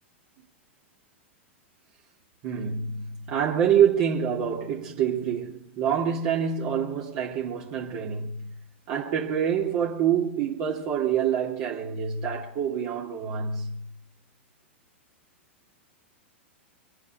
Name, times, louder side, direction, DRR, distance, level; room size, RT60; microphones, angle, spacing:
voice 1, 2.4-8.6 8.9-13.9, right 8 dB, 45° right, 2.8 m, -26 dB
25.5 x 9.8 x 5.0 m
figure-of-eight pair, 100°, 7 cm